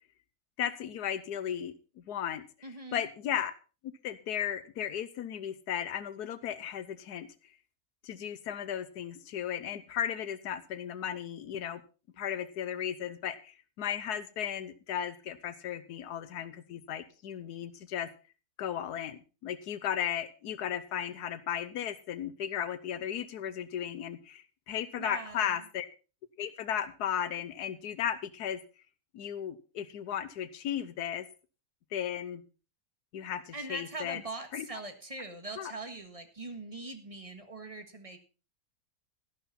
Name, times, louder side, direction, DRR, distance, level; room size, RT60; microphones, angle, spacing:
voice 1, 0.6-1.7 2.1-2.4 2.9-3.5 4.0-7.3 8.0-11.8 12.2-18.1 18.6-25.9 26.4-28.6 29.1-31.3 31.9-32.4 33.1-34.2 34.5-34.6 35.6-35.7, left 9 dB, 85° left, 13 dB, 1.3 m, -35 dB
voice 2, 2.6-3.0 25.0-25.6 33.5-38.2, right 2 dB, 20° right, 7 dB, 1.6 m, -42 dB
13.0 x 11.5 x 4.1 m, 0.34 s
omnidirectional pair, 1.6 m